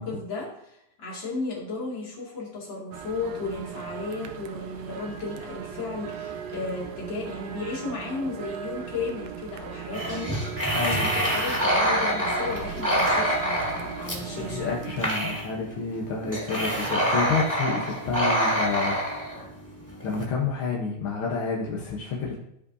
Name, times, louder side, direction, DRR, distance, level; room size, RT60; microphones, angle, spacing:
voice 1, 0.0-14.7, left 3 dB, 40° left, -4 dB, 2.8 m, -34 dB
sound 1, 2.9-15.1, right 7 dB, 75° right, 1.8 m, -38 dB
sound 2, 9.9-20.2, equal, 5° left, 2.3 m, -26 dB
voice 2, 10.7-11.1 14.4-19.0 20.0-22.3, left 4 dB, 60° left, -3 dB, 1.5 m, -29 dB
15.0 x 5.1 x 2.7 m, 0.79 s
omnidirectional pair, 3.4 m